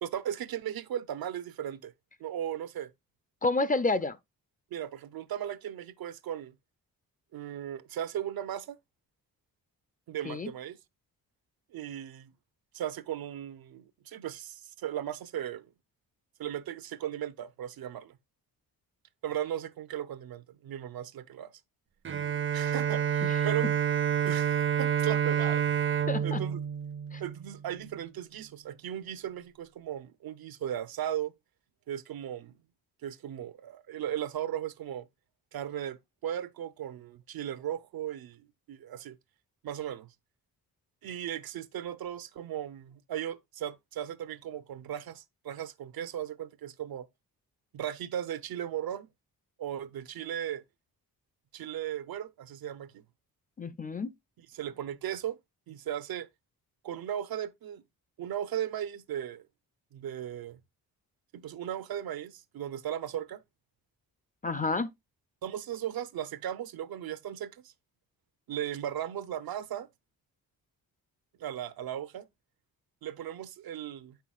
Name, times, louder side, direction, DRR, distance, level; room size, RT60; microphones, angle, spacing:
voice 1, 0.0-1.9 2.2-2.9 4.7-6.5 7.3-8.8 10.1-10.8 11.7-12.3 12.7-15.7 16.4-18.2 19.2-21.5 22.5-23.7 24.2-26.6 27.2-31.3 31.9-32.6 33.0-35.1 35.5-39.2 39.6-40.1 41.0-47.1 47.7-49.1 49.6-50.6 51.5-53.0 54.5-55.4 55.7-56.3 56.8-57.8 58.2-59.5 59.9-60.6 61.3-63.4 65.4-67.7 68.5-69.9 71.4-72.3 73.0-74.2, right 10 dB, 70° right, 0.7 m, -37 dB
voice 2, 3.4-4.2 10.2-10.5 23.3-23.4 26.1-26.4 27.1-27.2 53.6-54.1 64.4-64.9, left 3 dB, 25° left, 0.5 m, -29 dB
Bowed string instrument, 22.0-27.7, right 8 dB, 35° right, 0.5 m, -28 dB
8.0 x 5.8 x 2.3 m
cardioid pair, 115°, 37 cm